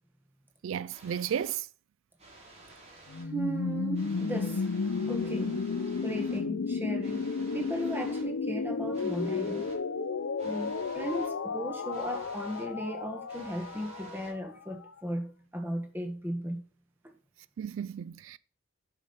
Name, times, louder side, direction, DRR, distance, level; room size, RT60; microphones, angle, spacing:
voice 1, 0.6-1.7 17.6-18.4, right 9 dB, 80° right, 0.3 m, -33 dB
sound 1, 0.9-1.6 2.2-3.2 3.9-6.4 7.0-8.2 8.9-9.7 10.4-11.3 11.9-12.6 13.3-14.3, right 2 dB, 35° right, 4.0 m, -51 dB
sound 2, 3.1-14.9, left 4 dB, 85° left, 0.6 m, -33 dB
voice 2, 3.3-4.7 5.1-5.6 6.0-7.3 7.5-9.7 10.4-16.6, right 1 dB, 10° right, 1.5 m, -36 dB
9.7 x 5.7 x 5.3 m
head